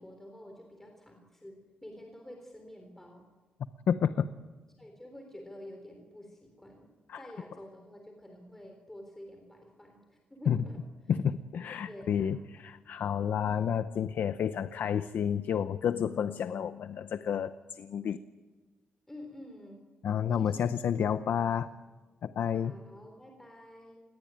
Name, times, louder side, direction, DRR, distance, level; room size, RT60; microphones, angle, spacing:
voice 1, 0.0-3.2 4.8-6.9 7.2-10.8 11.9-12.4 13.4-13.6 19.1-19.8 20.3-21.5 22.5-24.0, left 1 dB, 10° left, 3 dB, 3.7 m, -49 dB
voice 2, 3.9-4.3 7.1-7.2 10.5-10.6 11.1-18.2 20.0-21.7 22.2-22.7, left 8 dB, 70° left, 11 dB, 0.9 m, -30 dB
29.0 x 21.5 x 9.1 m, 1.3 s
wide cardioid pair, 160°, 4 cm